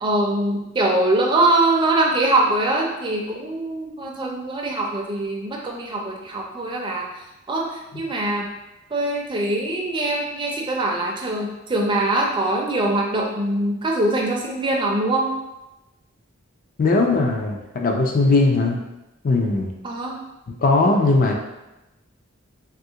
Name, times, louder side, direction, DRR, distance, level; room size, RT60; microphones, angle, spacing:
voice 1, 0.0-7.1 7.5-8.5 8.9-15.3 19.8-20.2, right 2 dB, 25° right, -1 dB, 0.4 m, -23 dB
voice 2, 16.8-18.8 19.2-19.7 20.6-21.3, left 3 dB, 40° left, 2 dB, 0.4 m, -19 dB
3.1 x 2.4 x 2.7 m, 0.96 s
head